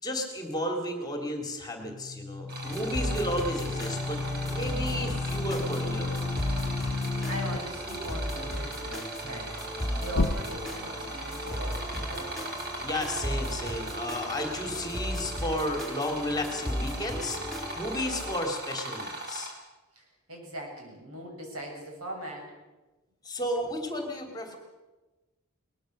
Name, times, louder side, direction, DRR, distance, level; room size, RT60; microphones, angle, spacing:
voice 1, 0.0-6.2 12.8-17.4 17.8-19.5 23.2-24.6, left 1 dB, 20° left, 4 dB, 2.8 m, -33 dB
sound 1, 1.8-7.6 10.1-10.9, left 3 dB, 60° left, 0.7 m, -32 dB
sound 2, 2.5-19.5, right 2 dB, 45° right, 4.6 m, -39 dB
sound 3, 2.6-18.3, equal, ahead, 3.8 m, -36 dB
voice 2, 7.2-12.4 19.9-22.5, equal, 85° right, 1 dB, 7.2 m, -40 dB
21.5 x 20.5 x 6.6 m, 1.2 s
head